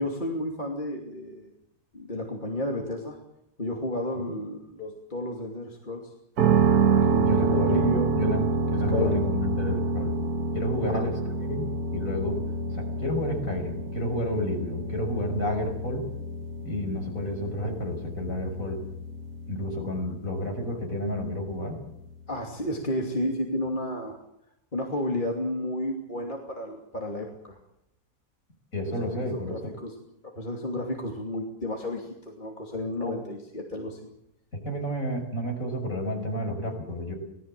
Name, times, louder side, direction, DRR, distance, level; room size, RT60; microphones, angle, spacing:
voice 1, 0.0-1.5 1.9-3.2 3.6-6.1 7.0-8.4 8.9-9.2 10.9-11.0 22.3-24.2 24.7-27.6 29.5-29.9 30.3-34.0, left 1 dB, 30° left, 0 dB, 3.0 m, -32 dB
sound 1, 6.4-22.2, right 4 dB, 70° right, 2.0 m, -28 dB
voice 2, 7.2-10.1 10.5-11.1 11.4-12.4 12.7-16.1 16.6-18.8 19.5-21.8 28.7-29.7 33.0-33.2 34.6-37.1, left 1 dB, 55° left, 3 dB, 6.4 m, -30 dB
26.0 x 18.5 x 7.7 m, 0.82 s
omnidirectional pair, 1.7 m